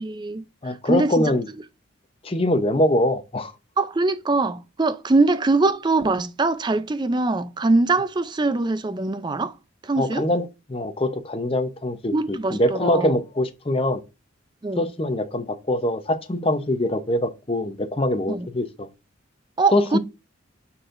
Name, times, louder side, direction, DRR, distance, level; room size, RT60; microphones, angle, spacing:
voice 1, 0.0-1.3 3.8-9.5 9.8-10.3 12.1-13.1 14.6-14.9 18.3-18.5 19.6-20.0, right 3 dB, 20° right, 0.4 m, -23 dB
voice 2, 0.6-1.5 2.2-3.5 10.0-14.0 14.8-18.9 19.7-20.0, left 1 dB, 25° left, 0.7 m, -23 dB
9.4 x 4.4 x 2.5 m
head